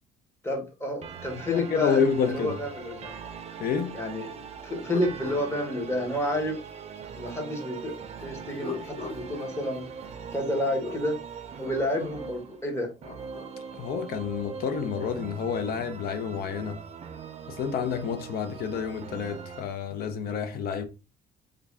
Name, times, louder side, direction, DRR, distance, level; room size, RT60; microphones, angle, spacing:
voice 1, 0.4-3.1 3.9-6.6 7.2-9.9 10.3-11.2 11.6-12.9, left 1 dB, 15° left, 1.1 m, -30 dB
sound 1, 1.0-19.6, right 6 dB, 40° right, 0.5 m, -41 dB
voice 2, 1.5-2.6 3.6-4.0 13.7-16.8 17.5-20.8, left 6 dB, 65° left, 0.6 m, -29 dB
sound 2, 3.8-4.0 4.5-6.5 8.3-11.1 12.8-13.6, left 4 dB, 35° left, 1.0 m, -42 dB
3.4 x 2.3 x 3.5 m
cardioid pair, 110°, 17 cm